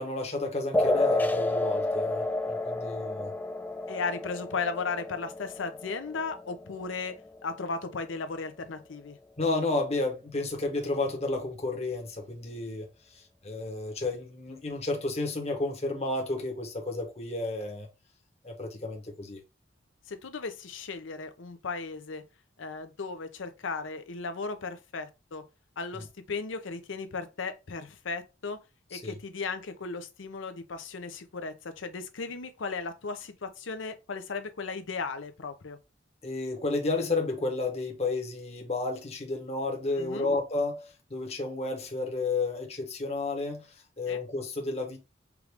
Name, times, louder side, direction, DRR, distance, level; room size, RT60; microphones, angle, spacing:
voice 1, 0.0-3.3 9.4-17.9 18.4-19.4 28.9-29.2 36.2-45.0, left 2 dB, 35° left, 1.0 m, -32 dB
sound 1, 0.7-7.8, left 2 dB, 10° left, 0.3 m, -31 dB
voice 2, 3.9-9.2 20.1-22.2 22.6-25.4 25.8-28.6 28.9-35.8 40.0-40.3 44.1-44.2, left 4 dB, 75° left, 0.7 m, -36 dB
4.7 x 2.5 x 3.4 m
head